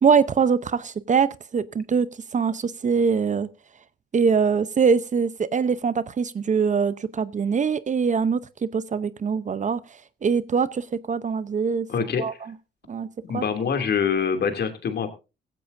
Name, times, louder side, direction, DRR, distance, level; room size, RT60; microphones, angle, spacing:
voice 1, 0.0-2.1 2.3-3.5 4.1-9.8 10.2-11.9 12.2-12.3 12.9-13.1 13.3-13.4, right 6 dB, 40° right, 0.8 m, -23 dB
voice 2, 11.9-12.2 13.2-15.1, left 6 dB, 55° left, 2.7 m, -25 dB
15.5 x 15.5 x 2.6 m
cardioid pair, 90°, 20 cm